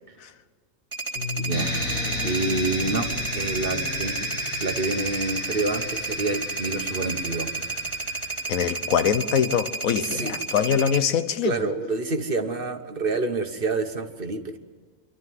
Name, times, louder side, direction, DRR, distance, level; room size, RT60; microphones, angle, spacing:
sound 1, 0.9-11.0, right 3 dB, 20° right, 1.6 m, -31 dB
Bass guitar, 1.2-7.4, left 5 dB, 55° left, 2.5 m, -38 dB
voice 1, 1.3-3.1 3.3-4.3 4.6-7.5 10.0-10.3 11.4-14.4, right 3 dB, 45° right, 1.3 m, -28 dB
sound 2, 1.5-9.1, equal, 15° left, 6.5 m, -34 dB
voice 2, 8.5-11.5, left 8 dB, 85° left, 1.3 m, -23 dB
25.0 x 12.5 x 9.4 m
omnidirectional pair, 1.4 m